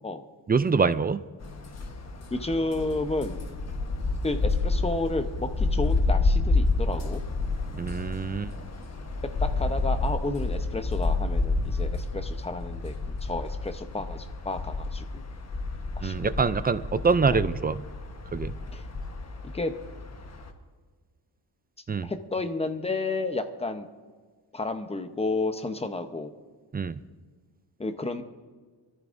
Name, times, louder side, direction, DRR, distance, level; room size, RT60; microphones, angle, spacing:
voice 1, 0.5-1.2 7.7-8.5 16.0-17.8 18.3-18.5 21.9-22.1 26.7-27.0, right 5 dB, 25° right, 14 dB, 0.4 m, -25 dB
sound 1, 1.4-20.5, left 3 dB, 35° left, 1.2 m, -29 dB
voice 2, 2.3-3.4 4.2-7.2 9.4-15.2 16.0-16.3 17.3-17.4 18.7-18.8 19.4-19.7 22.0-23.9 24.5-26.3 27.8-28.2, left 2 dB, 15° left, 7 dB, 0.8 m, -31 dB
24.0 x 14.0 x 2.6 m, 1.5 s
wide cardioid pair, 130°, 43 cm